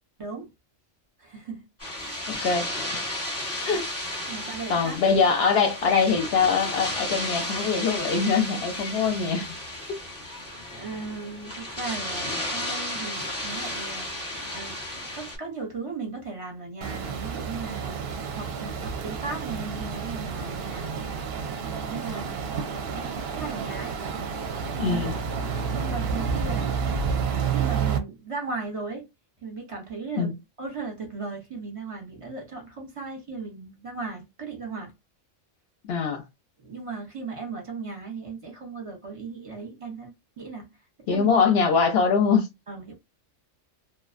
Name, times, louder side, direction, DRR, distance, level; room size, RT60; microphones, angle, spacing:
voice 1, 1.2-2.3 4.3-5.0 10.7-18.0 18.3-20.9 21.6-24.0 24.7-26.7 27.3-29.1 29.4-34.9 36.6-40.7 41.1-41.3 42.7-42.9, right 4 dB, 35° right, 0.7 m, -37 dB
sound 1, 1.8-15.4, left 1 dB, 15° left, 0.8 m, -33 dB
voice 2, 2.3-2.7 2.9-3.1 3.7-3.9 4.2-4.3 4.7-9.5 9.9-10.0 24.8-25.1 30.2-30.3 35.8-36.2 41.1-42.5, left 5 dB, 65° left, 0.7 m, -23 dB
sound 2, 16.8-28.0, right 6 dB, 65° right, 0.7 m, -30 dB
2.5 x 2.1 x 2.4 m
omnidirectional pair, 1.3 m